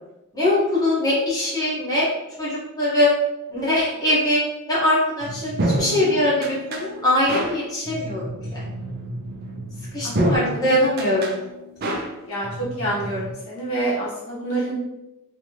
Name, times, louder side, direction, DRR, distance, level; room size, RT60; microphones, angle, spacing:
voice 1, 0.3-2.1 2.4-3.1 3.5-4.4 4.7-8.6 9.9-11.3, left 1 dB, 20° left, -9 dB, 1.3 m, -22 dB
sound 1, 5.2-13.3, right 1 dB, 45° right, 0.5 m, -29 dB
voice 2, 10.0-10.7 12.3-14.8, right 2 dB, 80° left, -7 dB, 1.4 m, -28 dB
3.2 x 3.1 x 2.9 m, 0.97 s
head